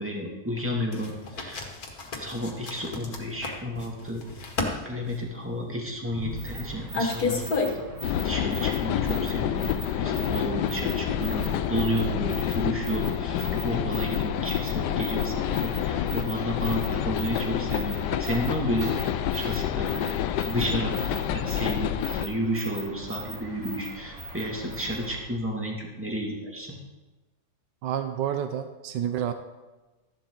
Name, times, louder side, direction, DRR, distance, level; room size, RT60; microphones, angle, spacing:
voice 1, 0.0-1.6 2.1-4.2 4.7-7.9 8.2-9.7 10.0-20.1 20.4-26.8, equal, 5° right, -1 dB, 2.2 m, -31 dB
sound 1, 0.9-8.1, left 3 dB, 55° left, 2.0 m, -32 dB
sound 2, 6.3-25.2, right 2 dB, 40° right, 3.8 m, -40 dB
sound 3, 8.0-22.3, left 10 dB, 75° left, 1.2 m, -28 dB
voice 2, 27.8-29.3, right 9 dB, 90° right, 8 dB, 1.4 m, -29 dB
14.5 x 11.5 x 3.9 m, 1.2 s
omnidirectional pair, 1.9 m